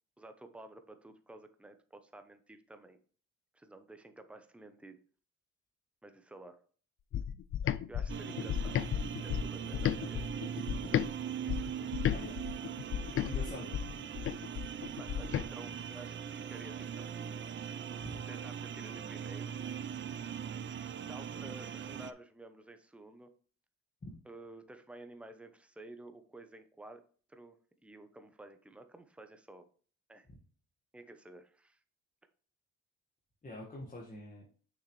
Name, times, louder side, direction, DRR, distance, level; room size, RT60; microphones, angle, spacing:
voice 1, 0.2-3.0 3.5-5.0 6.0-6.6 7.9-8.8 9.2-10.3 14.9-17.3 18.3-19.5 21.1-23.3 24.3-27.0 27.3-27.6 27.8-29.7 30.1-30.3 30.9-31.8, right 2 dB, 5° right, 8 dB, 0.8 m, -52 dB
sound 1, 7.1-11.1 11.5-15.5, left 10 dB, 45° left, 0.4 m, -34 dB
sound 2, 8.1-22.1, right 8 dB, 40° right, 0.5 m, -41 dB
voice 2, 12.1-12.5 13.2-13.8 15.4-15.5 18.0-18.2 24.0-24.1 33.4-34.5, left 1 dB, 25° left, -3 dB, 1.7 m, -46 dB
6.4 x 6.2 x 3.2 m, 0.41 s
cardioid pair, 90°, 30 cm